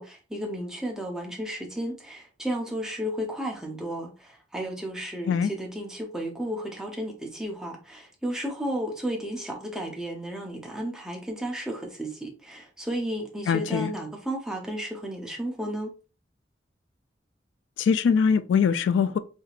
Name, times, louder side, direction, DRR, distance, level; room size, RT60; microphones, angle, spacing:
voice 1, 0.0-15.9, equal, 5° right, 0.7 m, -33 dB
voice 2, 13.5-13.9 17.8-19.2, left 6 dB, 90° left, 0.3 m, -22 dB
3.4 x 2.8 x 2.4 m
head